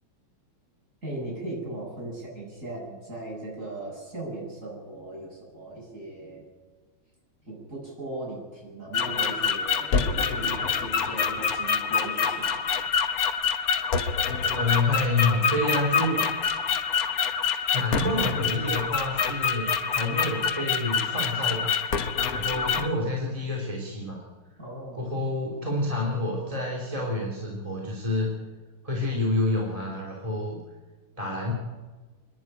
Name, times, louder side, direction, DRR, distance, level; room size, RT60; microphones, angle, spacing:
voice 1, 1.0-6.5 7.4-12.5 24.6-25.1, right 2 dB, 35° right, -3 dB, 8.4 m, -38 dB
sound 1, 8.9-22.9, left 6 dB, 50° left, 1.4 m, -26 dB
voice 2, 14.5-16.2 17.7-21.8 22.3-24.2 24.9-28.3 28.8-30.6 31.2-31.5, left 2 dB, 15° right, -2 dB, 3.0 m, -28 dB
29.0 x 11.0 x 9.0 m, 1.3 s
omnidirectional pair, 2.4 m